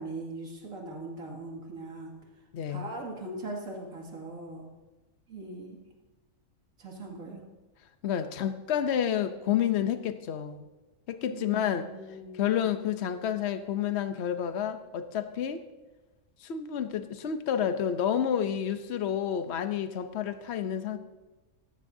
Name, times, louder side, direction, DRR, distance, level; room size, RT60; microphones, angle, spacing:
voice 1, 0.0-2.1 2.7-4.7 5.3-5.8 6.8-7.4 11.3-12.8, right 2 dB, 85° right, -1 dB, 2.7 m, -40 dB
voice 2, 2.5-2.9 8.0-10.7 11.1-11.9 12.3-15.6 16.4-21.0, left 9 dB, 60° left, 10 dB, 1.0 m, -29 dB
16.5 x 15.0 x 2.7 m, 1.1 s
omnidirectional pair, 1.4 m